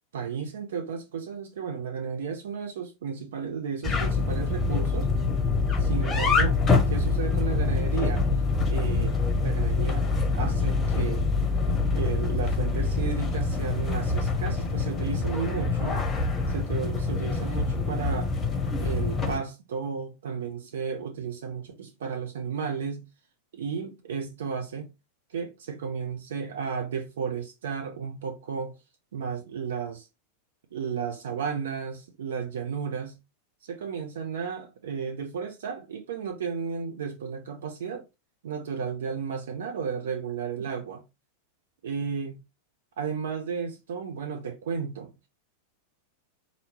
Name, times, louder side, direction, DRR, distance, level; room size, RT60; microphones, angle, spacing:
voice 1, 0.1-5.1 5.8-6.6 6.9-8.2 8.7-11.2 11.9-16.0 16.5-18.3 18.8-23.1 23.5-24.9 25.3-28.8 29.1-30.1 30.7-33.2 33.6-38.0 38.4-41.0 41.8-42.4 43.0-45.1, right 6 dB, 60° right, 0.6 m, -33 dB
sound 1, 3.8-19.4, left 4 dB, 20° left, 0.8 m, -25 dB
4.1 x 2.6 x 3.2 m
figure-of-eight pair, 90°, 0 cm